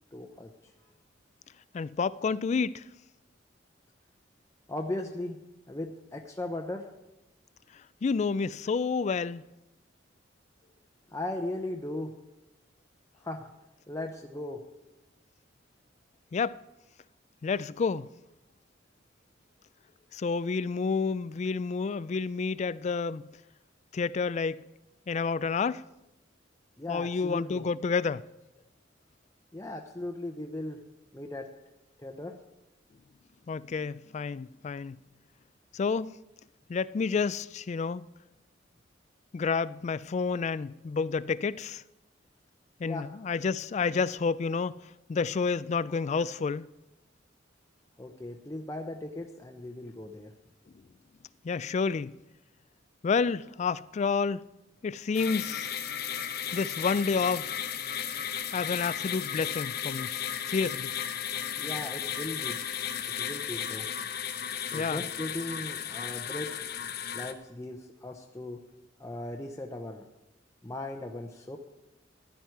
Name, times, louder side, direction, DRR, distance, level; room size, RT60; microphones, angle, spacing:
voice 1, 0.1-0.5 0.8-0.9 4.7-5.4 5.7-6.9 11.1-12.1 13.2-13.5 13.9-14.6 26.8-27.6 29.5-30.8 31.1-31.5 32.0-32.3 42.8-43.1 48.0-50.3 61.6-62.6 63.2-63.9 64.7-66.5 67.1-68.6 69.0-70.0 70.6-71.6, left 1 dB, 15° left, 0.7 m, -37 dB
voice 2, 1.7-2.8 8.0-9.4 16.3-16.6 17.4-18.1 20.1-23.3 23.9-24.6 25.1-25.8 26.9-28.3 33.5-35.0 35.7-36.2 36.7-38.0 39.3-41.8 42.8-44.8 45.1-46.7 51.4-52.1 53.0-54.4 54.8-55.7 56.5-57.5 58.5-60.2 60.5-60.9 64.7-65.0, left 5 dB, 35° left, 0.3 m, -29 dB
sound 1, 55.1-67.3, left 9 dB, 55° left, 0.8 m, -35 dB
14.5 x 11.0 x 4.6 m
head